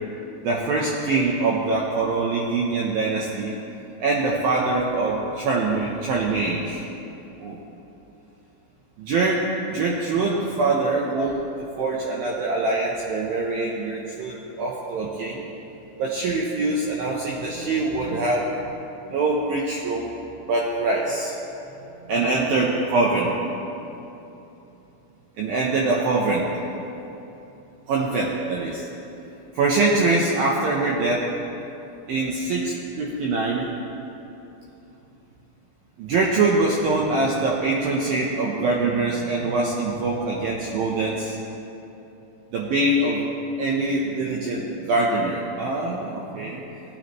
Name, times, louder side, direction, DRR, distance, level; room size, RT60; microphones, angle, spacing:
voice 1, 0.4-3.5 4.0-6.9 7.4-7.6 9.0-15.5 16.0-18.5 19.1-20.1 20.5-21.3 22.1-23.3 25.4-26.5 27.9-28.9 29.5-31.3 32.1-33.7 36.0-41.4 42.5-43.3 43.6-46.6, right 3 dB, 80° right, -3 dB, 2.1 m, -24 dB
19.5 x 9.6 x 3.1 m, 3.0 s
omnidirectional pair, 5.3 m